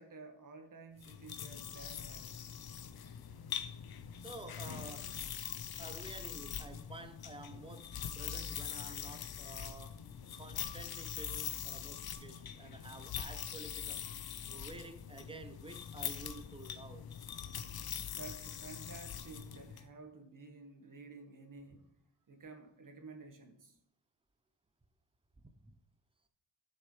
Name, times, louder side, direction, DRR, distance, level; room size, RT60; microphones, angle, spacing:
voice 1, 0.0-2.6 18.1-21.9 22.3-23.8, right 4 dB, 45° right, 1.5 m, -52 dB
sound 1, 1.0-19.8, left 8 dB, 55° left, 0.7 m, -43 dB
voice 2, 4.2-5.2 5.8-10.0 10.4-14.1 14.5-17.1 25.4-25.7, right 2 dB, 10° right, 0.7 m, -51 dB
11.0 x 6.4 x 3.3 m
wide cardioid pair, 115°, 45 cm